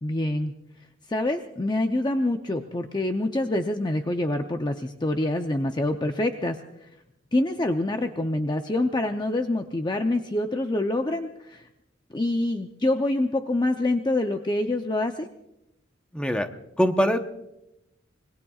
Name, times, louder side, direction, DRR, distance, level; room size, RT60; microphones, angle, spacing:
voice 1, 0.0-0.5 1.1-6.9 7.3-11.7 12.1-15.3, left 1 dB, 20° left, 5 dB, 0.6 m, -26 dB
voice 2, 16.1-16.5 16.8-17.2, equal, 5° left, 6 dB, 0.9 m, -22 dB
26.0 x 21.5 x 2.4 m, 0.86 s
head